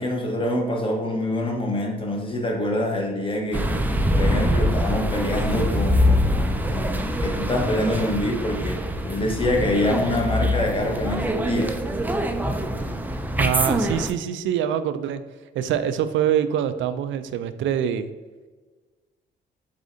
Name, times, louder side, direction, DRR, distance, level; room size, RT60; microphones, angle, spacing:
voice 1, 0.0-3.7 4.1-8.8 9.0-11.7, left 1 dB, 25° left, 1 dB, 1.1 m, -25 dB
sound 1, 3.5-14.1, equal, 10° right, 0.4 m, -24 dB
voice 2, 13.4-15.2 15.5-18.1, right 9 dB, 75° right, 11 dB, 0.4 m, -24 dB
4.9 x 4.1 x 2.7 m, 1.3 s
cardioid pair, 90°, 20 cm